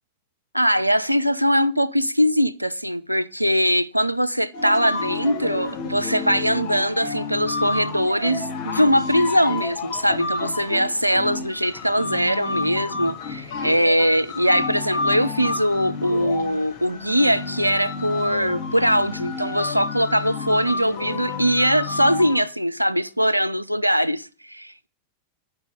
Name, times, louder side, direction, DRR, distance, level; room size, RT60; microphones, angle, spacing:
voice 1, 0.5-24.9, equal, 90° right, 0.4 m, -21 dB
sound 1, 4.5-22.4, left 4 dB, 50° left, 2.3 m, -30 dB
10.0 x 5.6 x 6.5 m
figure-of-eight pair, 90°, 0 cm